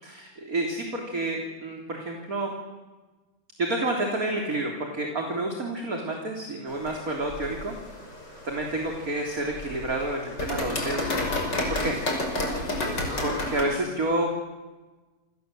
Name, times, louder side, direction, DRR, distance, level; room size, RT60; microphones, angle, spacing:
voice 1, 0.0-2.5 3.6-7.7 8.4-11.2 11.7-11.9 13.2-14.3, right 2 dB, 20° right, 1 dB, 3.3 m, -29 dB
sound 1, 6.7-13.6, left 1 dB, 25° left, 6.2 m, -31 dB
28.5 x 27.0 x 7.8 m, 1.2 s
omnidirectional pair, 4.8 m